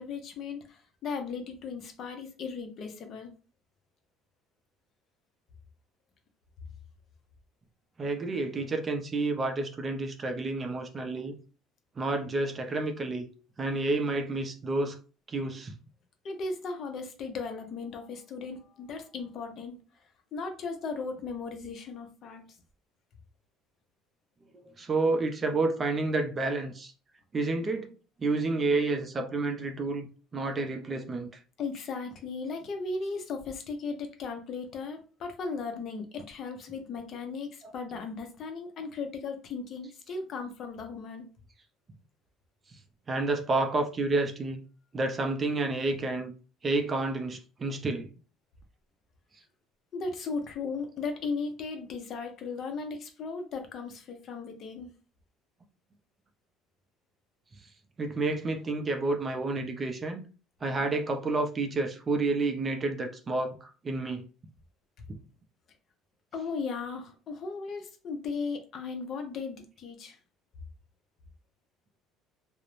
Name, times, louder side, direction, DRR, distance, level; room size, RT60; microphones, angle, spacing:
voice 1, 0.0-3.3 16.2-19.8 20.3-22.4 31.6-41.3 49.9-54.9 65.0-65.1 66.3-70.2, left 4 dB, 45° left, 0.5 m, -36 dB
voice 2, 8.0-11.3 12.0-13.3 13.6-15.0 15.3-15.7 24.5-26.9 27.3-27.9 28.2-30.1 30.3-31.3 37.6-37.7 43.1-44.6 44.9-46.3 46.6-48.1 58.0-60.2 60.6-64.2, right 3 dB, 25° right, 0.4 m, -30 dB
2.4 x 2.0 x 3.0 m
cardioid pair, 140°, 0 cm